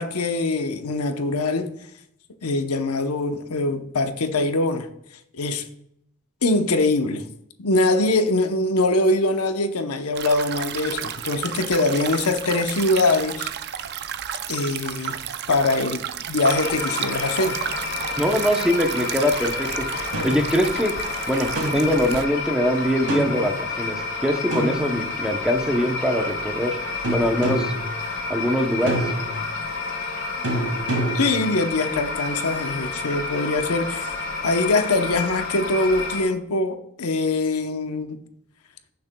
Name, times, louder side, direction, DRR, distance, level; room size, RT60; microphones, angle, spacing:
voice 1, 0.0-1.7 2.4-4.9 5.3-5.7 6.4-7.2 7.6-13.5 14.5-15.2 15.5-17.6 31.1-38.2, left 2 dB, 85° left, 0.8 m, -23 dB
sound 1, 10.2-22.2, right 9 dB, 50° right, 0.5 m, -32 dB
sound 2, 16.5-36.2, left 3 dB, 55° left, 2.6 m, -30 dB
voice 2, 18.2-19.9 20.2-21.0 21.3-26.8 27.1-27.7 28.3-29.1, equal, 5° right, 0.7 m, -23 dB
sound 3, 20.1-20.5 21.5-22.1 23.1-23.5 24.5-25.4 27.0-27.9 28.9-29.4 30.4-31.4, right 1 dB, 85° right, 2.3 m, -27 dB
16.0 x 7.0 x 2.3 m
head